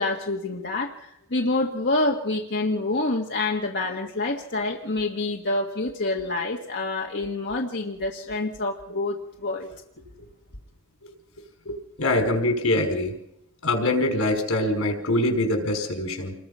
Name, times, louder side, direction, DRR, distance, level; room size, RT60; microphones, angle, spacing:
voice 1, 0.0-9.7, left 2 dB, 55° left, 0 dB, 1.7 m, -27 dB
voice 2, 11.7-13.2 13.6-16.3, left 1 dB, 80° left, 4 dB, 5.1 m, -24 dB
27.5 x 21.5 x 5.6 m, 0.82 s
head